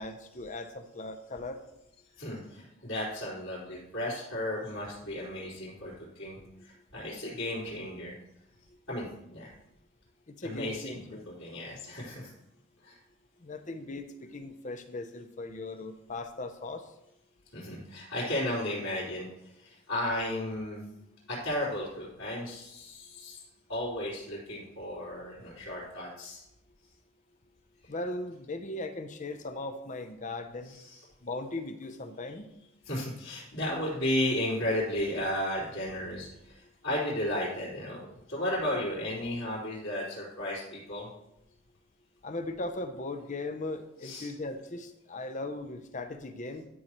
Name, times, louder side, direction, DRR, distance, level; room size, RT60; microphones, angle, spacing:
voice 1, 0.0-1.6 10.4-11.3 13.4-16.9 27.9-30.8 31.2-32.4 42.2-46.6, left 2 dB, 35° left, 9 dB, 0.7 m, -38 dB
voice 2, 2.2-8.1 8.9-9.5 10.4-11.0 11.3-12.3 12.8-13.0 17.5-19.3 19.6-20.8 21.3-23.4 23.7-26.4 30.6-31.0 32.8-41.1 44.0-44.3, left 1 dB, 65° left, -11 dB, 3.8 m, -34 dB
12.5 x 6.5 x 3.1 m, 0.85 s
head